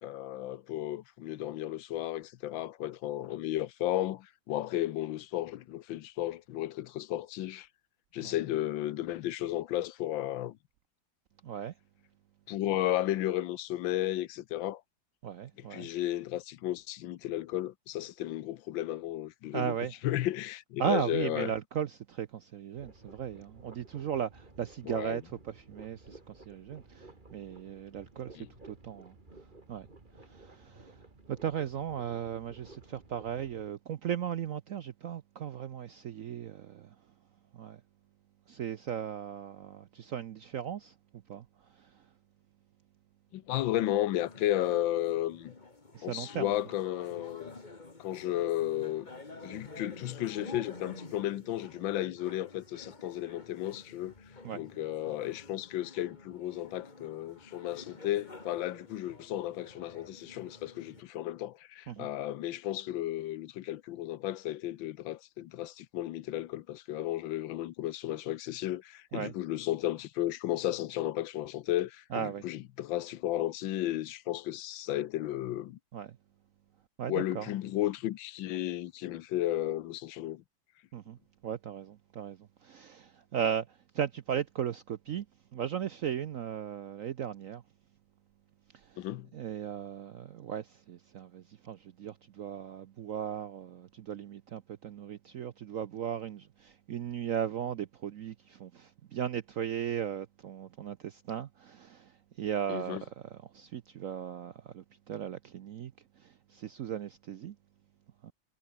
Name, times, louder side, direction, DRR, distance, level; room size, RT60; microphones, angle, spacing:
voice 1, 0.0-7.7 8.1-10.6 12.5-14.8 15.6-19.8 20.0-21.5 24.9-25.2 28.3-28.5 43.3-45.5 46.0-47.5 48.0-49.1 49.4-54.1 54.5-75.8 77.1-80.4 89.0-89.3 102.7-103.0, left 13 dB, 80° left, 1.5 m, -34 dB
voice 2, 11.4-11.7 15.2-15.9 19.5-19.9 20.8-29.1 29.7-29.9 30.2-31.0 31.3-36.9 37.5-37.8 38.5-40.9 41.3-41.5 41.8-41.9 45.9-46.5 54.4-54.6 61.9-62.1 69.1-69.3 72.1-72.4 75.9-76.2 77.0-77.5 80.9-81.2 81.4-85.3 85.5-87.6 88.7-89.0 89.3-105.9 106.2-107.6 108.2-108.3, right 9 dB, 65° right, 0.8 m, -37 dB
sound 1, 22.7-33.7, right 2 dB, 25° right, 3.3 m, -55 dB
sound 2, 44.1-61.0, left 3 dB, 25° left, 2.1 m, -50 dB
omnidirectional pair, 2.1 m